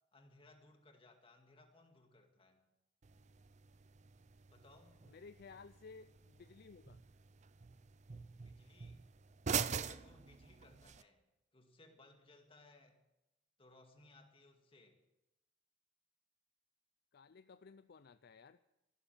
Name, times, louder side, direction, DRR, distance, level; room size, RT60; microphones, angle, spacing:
voice 1, 0.1-2.7 4.5-5.0 8.3-9.1 9.5-11.2 11.5-13.0 13.6-15.0, left 2 dB, 25° left, 4 dB, 2.0 m, -64 dB
sound 1, 3.0-11.0, right 7 dB, 35° right, 0.5 m, -45 dB
voice 2, 5.0-7.0 17.1-18.6, left 4 dB, 50° left, 12 dB, 0.4 m, -57 dB
14.5 x 12.0 x 7.3 m, 0.95 s
head